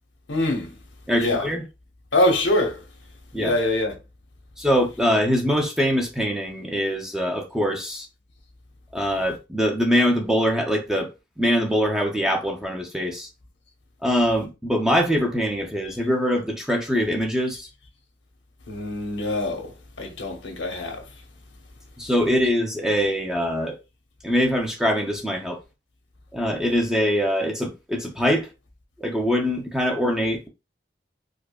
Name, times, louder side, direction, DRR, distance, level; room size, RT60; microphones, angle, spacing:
voice 1, 0.3-0.7 1.1-1.4 2.1-2.8 3.4-3.9 18.7-19.7 20.0-21.0, left 1 dB, 85° left, 0.9 m, -24 dB
voice 2, 1.1-1.6 3.3-3.6 4.6-8.1 8.9-13.3 14.0-17.7 22.0-23.8 24.2-25.6 26.3-28.5 29.0-30.5, equal, 5° right, 0.5 m, -23 dB
4.8 x 2.1 x 2.3 m
head